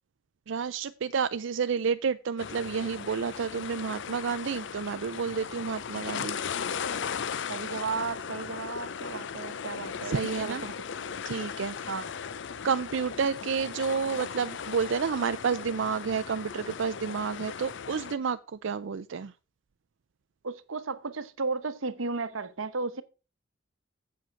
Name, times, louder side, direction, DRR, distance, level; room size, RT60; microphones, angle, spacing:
voice 1, 0.5-6.4 10.0-10.6 11.2-11.9 12.6-19.3, right 6 dB, 65° right, 0.5 m, -30 dB
sound 1, 2.4-18.1, left 7 dB, 65° left, 0.6 m, -37 dB
voice 2, 7.5-10.7 11.9-12.1 20.4-23.0, right 4 dB, 85° right, 0.9 m, -34 dB
7.7 x 7.6 x 5.8 m
head